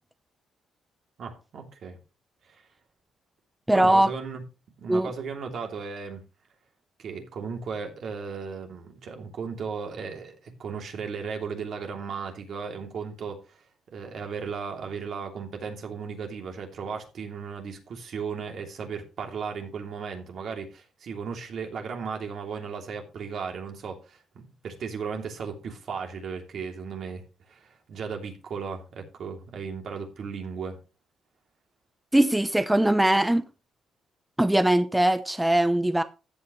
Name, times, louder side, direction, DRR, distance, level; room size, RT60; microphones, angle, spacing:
voice 1, 1.2-2.0 2.5-2.6 3.7-4.4 4.8-6.2 7.0-13.6 13.9-30.8, right 5 dB, 60° right, 2.9 m, -36 dB
voice 2, 3.7-4.1 4.9-5.1 32.1-33.4 34.4-36.0, right 1 dB, 10° right, 0.8 m, -21 dB
14.0 x 8.5 x 3.2 m
cardioid pair, 90°, 0 cm